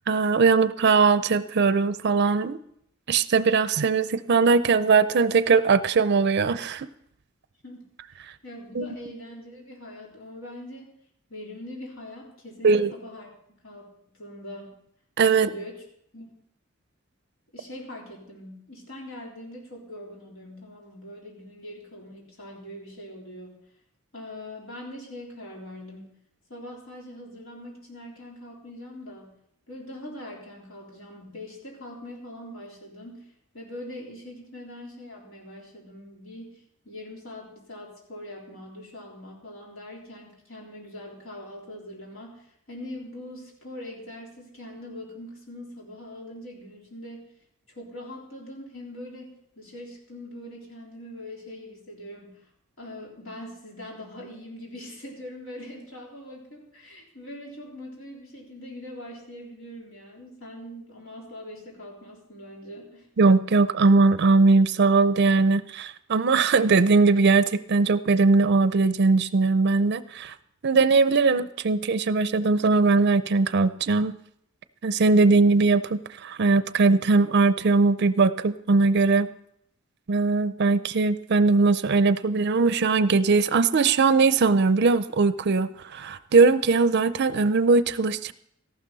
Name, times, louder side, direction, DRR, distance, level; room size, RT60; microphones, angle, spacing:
voice 1, 0.1-2.6 3.1-6.9 8.8-8.9 12.6-12.9 15.2-15.5 63.2-70.3 70.6-74.2 74.8-79.3 80.1-88.3, right 4 dB, 55° right, 13 dB, 0.5 m, -20 dB
voice 2, 8.4-10.9 11.3-13.3 13.6-13.9 14.2-14.8 15.3-15.9 16.1-16.4 17.5-23.6 24.1-26.2 26.5-29.4 29.7-47.2 47.7-52.5 52.8-63.1 85.7-85.8, left 1 dB, 75° left, -3 dB, 3.6 m, -42 dB
14.0 x 12.0 x 4.0 m, 0.71 s
head